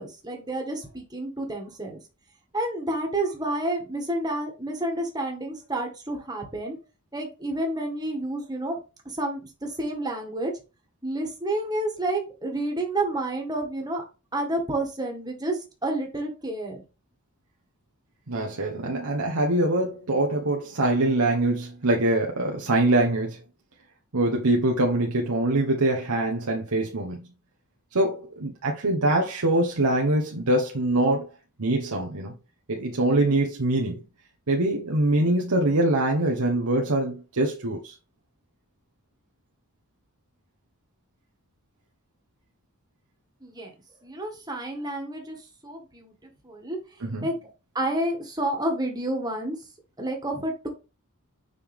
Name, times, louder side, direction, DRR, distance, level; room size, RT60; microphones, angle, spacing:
voice 1, 0.0-2.0 2.5-6.8 7.1-8.8 9.0-10.5 11.0-14.0 14.3-16.8 43.4-43.7 44.0-45.4 45.6-46.1 46.4-46.8 47.2-47.3 47.7-49.6 50.0-50.7, right 1 dB, 20° right, 1.8 m, -29 dB
voice 2, 18.3-23.4 24.1-27.2 27.9-31.3 31.6-32.3 32.7-34.0 34.5-37.9 47.0-47.3, right 2 dB, 90° right, 1.2 m, -24 dB
6.8 x 5.5 x 3.6 m
head